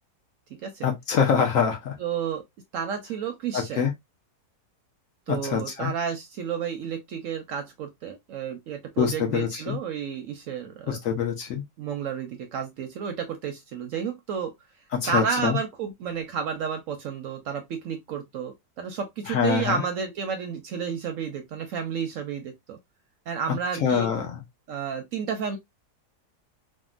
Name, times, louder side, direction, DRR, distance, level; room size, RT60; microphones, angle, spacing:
voice 1, 0.8-2.0 3.5-3.9 5.3-5.9 9.0-9.8 10.9-11.6 14.9-15.6 19.3-19.8 23.7-24.4, left 7 dB, 60° left, 1.0 m, -25 dB
voice 2, 2.0-2.4 2.7-3.8 5.3-11.0 11.8-14.5 15.1-22.8 23.3-24.1 24.7-25.6, right 7 dB, 70° right, 0.8 m, -31 dB
3.6 x 2.1 x 2.4 m
omnidirectional pair, 1.7 m